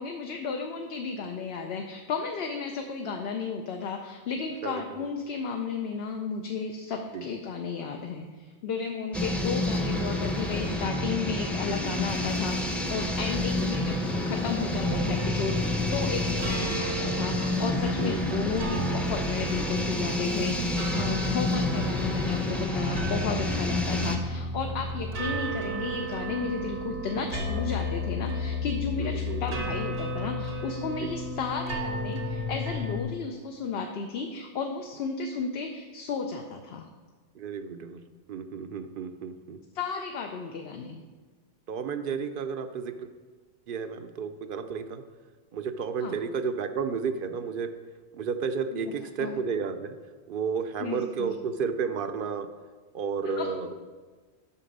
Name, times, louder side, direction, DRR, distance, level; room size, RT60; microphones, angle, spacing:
voice 1, 0.0-36.9 39.7-41.0 46.0-46.2 48.7-48.9 49.2-49.3 50.8-51.3 53.3-53.5, left 5 dB, 70° left, 3 dB, 0.9 m, -33 dB
voice 2, 4.6-5.1 7.1-7.3 13.6-13.7 18.0-18.4 29.0-29.6 31.0-31.1 37.3-39.6 41.7-43.1 43.7-45.0 45.5-47.7 48.1-50.0 50.3-52.5 52.9-53.8, right 5 dB, 60° right, 9 dB, 0.7 m, -32 dB
sound 1, 9.1-24.2, left 1 dB, ahead, 0.6 m, -29 dB
sound 2, 14.8-33.0, left 1 dB, 85° right, 1.6 m, -33 dB
8.4 x 5.8 x 5.3 m, 1.4 s
omnidirectional pair, 1.1 m